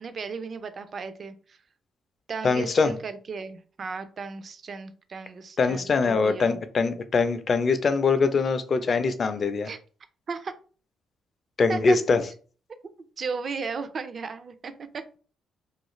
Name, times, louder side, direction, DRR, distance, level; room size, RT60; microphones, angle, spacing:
voice 1, 0.0-1.6 2.3-6.6 9.6-9.8 10.3-10.5 11.7-12.0 13.2-15.0, right 4 dB, 45° right, 11 dB, 0.4 m, -35 dB
voice 2, 2.4-2.9 5.6-9.7 11.6-12.2, left 4 dB, 45° left, 10 dB, 0.4 m, -23 dB
2.4 x 2.4 x 3.0 m, 0.39 s
cardioid pair, 90°, 0 cm